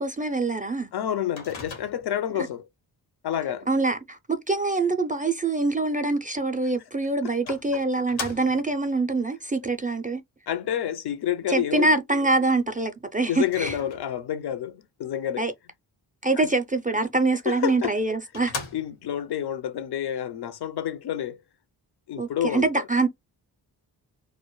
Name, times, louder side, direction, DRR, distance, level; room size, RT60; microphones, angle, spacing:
voice 1, 0.0-0.9 2.4-2.5 3.7-10.2 11.5-13.8 15.4-15.5 16.2-18.5 22.2-23.1, right 3 dB, 20° right, 0.4 m, -25 dB
voice 2, 0.9-2.7 3.2-3.7 7.5-7.8 10.5-11.9 13.3-15.4 16.4-16.5 17.5-17.9 18.7-21.4 22.1-22.8, left 10 dB, 60° left, 0.5 m, -29 dB
Microwave oven, 1.4-2.3 6.6-6.7 7.5-8.8 13.4-14.3 17.5-17.6 18.0-18.1 18.3-19.2, left 4 dB, 85° left, 0.9 m, -38 dB
2.2 x 2.0 x 3.0 m
supercardioid pair, 45°, 46 cm